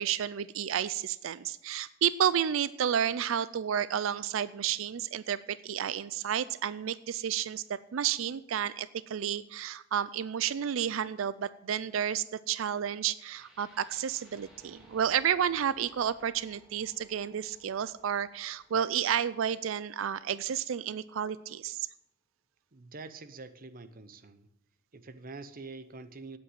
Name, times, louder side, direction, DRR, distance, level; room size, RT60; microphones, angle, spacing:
voice 1, 0.0-21.9, right 9 dB, 90° right, 17 dB, 0.4 m, -31 dB
sound 1, 13.0-21.1, left 1 dB, 5° right, 2.8 m, -61 dB
voice 2, 22.7-24.5 24.9-26.4, right 3 dB, 45° right, 12 dB, 0.8 m, -45 dB
9.1 x 8.0 x 7.9 m, 0.81 s
head